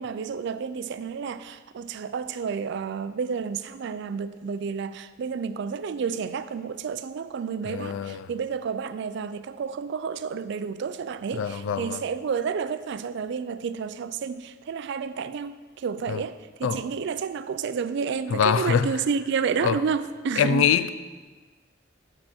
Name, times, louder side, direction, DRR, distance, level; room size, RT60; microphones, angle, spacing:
voice 1, 0.0-20.6, right 6 dB, 65° right, 0.4 m, -30 dB
voice 2, 7.7-8.3 11.4-12.0 16.1-16.2 16.6-16.8 18.3-18.9 19.6-19.8 20.4-20.9, left 7 dB, 90° left, 0.4 m, -23 dB
7.6 x 5.9 x 4.3 m
head